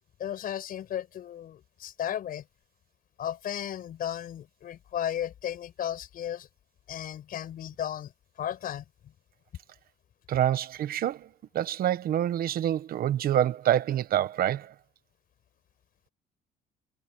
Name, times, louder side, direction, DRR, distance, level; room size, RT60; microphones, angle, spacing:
voice 1, 0.2-2.5 3.2-6.5 6.9-8.1 8.4-9.1, left 10 dB, 60° left, 5.8 m, -35 dB
voice 2, 10.3-11.3 11.5-14.7, right 11 dB, 60° right, 1.2 m, -26 dB
cardioid pair, 110°, 17 cm